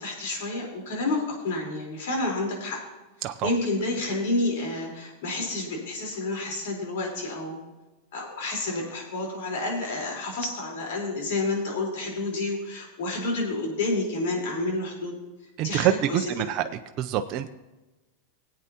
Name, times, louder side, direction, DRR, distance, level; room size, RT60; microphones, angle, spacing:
voice 1, 0.0-2.8 3.2-7.6 8.1-15.2 15.6-16.3, left 2 dB, 70° left, -1 dB, 3.9 m, -29 dB
voice 2, 3.2-3.5 15.6-16.7 17.0-17.5, right 11 dB, 40° right, 7 dB, 0.5 m, -25 dB
19.5 x 8.6 x 2.9 m, 1.1 s
supercardioid pair, 140°, 0 cm